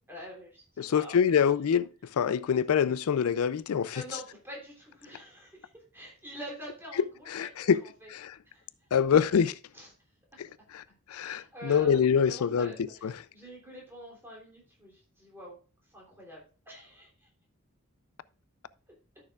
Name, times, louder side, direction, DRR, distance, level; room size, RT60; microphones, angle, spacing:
voice 1, 0.1-1.5 3.9-7.7 8.0-8.1 8.5-8.7 9.7-9.9 11.2-15.6 15.9-17.3, equal, 10° right, 3.2 m, -46 dB
voice 2, 0.8-4.0 7.3-7.8 8.1-8.4 8.9-9.6 10.7-12.7 13.0-13.2, left 7 dB, 80° left, 0.4 m, -25 dB
13.0 x 6.7 x 2.4 m
head